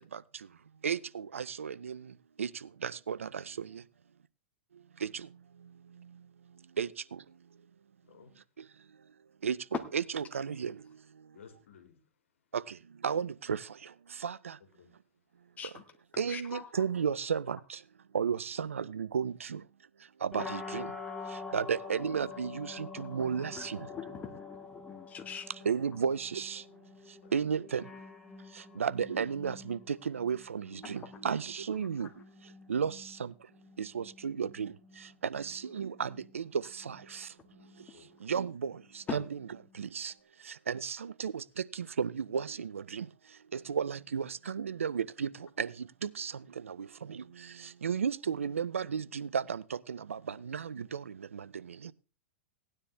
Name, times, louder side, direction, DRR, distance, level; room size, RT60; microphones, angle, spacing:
voice 1, 0.8-2.0 2.4-2.5 2.8-3.8 5.0-5.1 6.8-6.9 9.4-9.6 9.9-10.7 12.5-12.6 13.0-13.6 14.2-14.5 16.2-17.8 18.1-19.6 20.2-20.9 21.5-23.8 25.7-26.6 27.3-27.8 28.8-32.1 32.7-33.3 33.8-34.7 35.2-36.4 36.9-37.3 38.2-38.7 39.1-39.4 39.8-40.1 40.7-41.4 41.7-43.1 43.5-45.3 45.6-45.7 46.0-46.3 46.7-46.8 47.1-47.2 47.8-49.6 49.9-51.0 51.3-51.4, right 7 dB, 90° right, 0.5 m, -33 dB
voice 2, 8.0-8.3 11.3-12.1 14.6-14.9 27.2-27.3 28.7-28.9 35.4-35.5 37.9-38.1, left 7 dB, 75° left, 2.4 m, -57 dB
voice 3, 16.3-16.7 23.0-25.5 30.8-31.2 32.0-32.1 37.6-37.7 39.1-39.2, left 7 dB, 20° left, 1.8 m, -44 dB
sound 1, 20.3-40.1, left 4 dB, 5° left, 3.4 m, -48 dB
17.5 x 9.8 x 3.3 m
hypercardioid pair, 115°, 7 cm